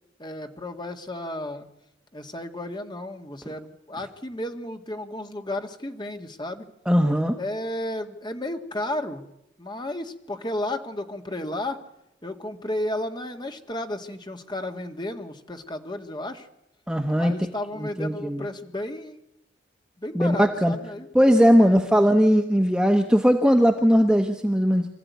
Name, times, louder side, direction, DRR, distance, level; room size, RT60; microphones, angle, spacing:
voice 1, 0.2-1.7 2.1-6.7 7.4-9.3 9.6-11.8 12.2-16.5 17.2-19.2 20.0-21.1 21.6-21.8, left 1 dB, 25° left, 6 dB, 1.7 m, -33 dB
voice 2, 6.9-7.3 16.9-17.3 17.8-18.4 20.1-20.7 21.1-24.9, equal, 5° right, 4 dB, 1.1 m, -19 dB
26.0 x 15.0 x 9.5 m, 0.87 s
head